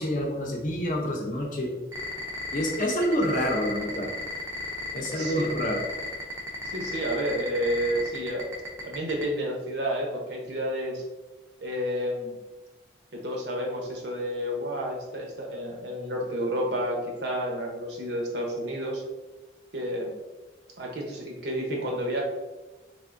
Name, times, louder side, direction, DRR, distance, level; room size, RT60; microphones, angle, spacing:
voice 1, 0.0-1.7 2.5-4.1 4.9-5.8, equal, 45° left, 0 dB, 0.6 m, -27 dB
sound 1, 1.9-9.2, equal, 15° right, 0.5 m, -35 dB
voice 2, 5.1-5.5 6.7-8.5 8.8-11.0 11.6-12.4 13.1-19.0 19.7-20.1 20.8-22.2, equal, 65° right, 0 dB, 0.8 m, -30 dB
3.5 x 3.4 x 2.5 m, 1.1 s
head